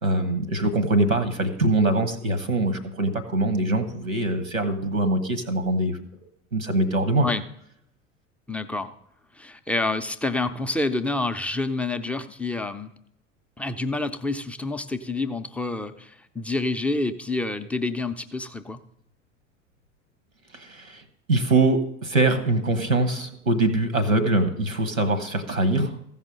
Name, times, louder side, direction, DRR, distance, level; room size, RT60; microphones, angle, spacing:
voice 1, 0.0-6.2 6.5-7.3 20.5-21.0 21.3-26.0, right 2 dB, 85° right, 11 dB, 1.3 m, -23 dB
voice 2, 8.5-8.9 9.3-12.9 13.6-18.8, left 2 dB, 5° left, 7 dB, 0.3 m, -28 dB
15.0 x 5.5 x 6.4 m, 0.75 s
figure-of-eight pair, 70°, 39 cm